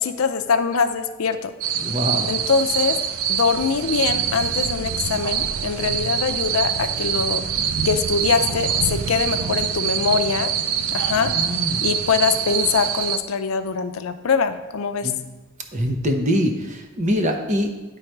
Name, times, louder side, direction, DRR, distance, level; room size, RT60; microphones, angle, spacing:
voice 1, 0.0-1.5 2.3-3.0 3.3-10.5 10.9-11.3 11.8-15.1, left 5 dB, 85° left, 9 dB, 0.5 m, -23 dB
sound 1, 1.6-13.2, right 8 dB, 85° right, 0.5 m, -25 dB
voice 2, 1.8-2.3 11.4-11.9 15.0-15.2 15.7-17.7, equal, 35° right, 3 dB, 0.8 m, -23 dB
10.0 x 3.9 x 4.5 m, 1.2 s
head